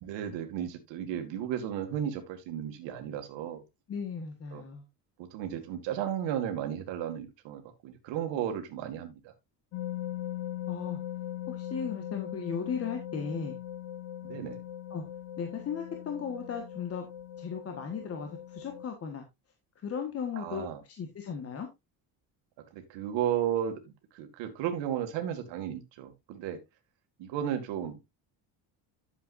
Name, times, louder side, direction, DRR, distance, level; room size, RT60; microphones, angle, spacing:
voice 1, 0.0-3.6 4.5-4.6 5.2-9.3 14.2-14.6 20.3-20.8 22.7-26.6 27.2-28.1, right 10 dB, 80° right, 5 dB, 2.1 m, -34 dB
voice 2, 3.9-4.8 10.7-11.0 11.5-13.6 14.9-15.0 15.4-17.1 17.4-19.2 19.8-21.7, left 6 dB, 35° left, 4 dB, 1.4 m, -36 dB
sound 1, 9.7-18.9, left 12 dB, 85° left, 1.3 m, -40 dB
11.5 x 7.4 x 2.5 m, 0.21 s
cardioid pair, 165°, 43 cm